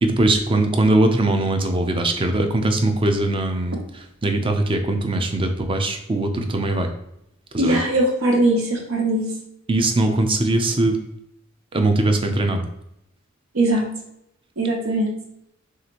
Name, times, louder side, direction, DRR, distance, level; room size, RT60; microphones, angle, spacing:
voice 1, 0.0-3.8 4.2-6.9 7.5-7.8 9.7-11.0 11.7-12.6, right 2 dB, 25° right, 6 dB, 0.5 m, -20 dB
voice 2, 7.6-9.3 13.5-13.8 14.6-15.1, right 1 dB, 85° right, 1 dB, 0.9 m, -20 dB
6.3 x 2.5 x 2.9 m, 0.80 s
head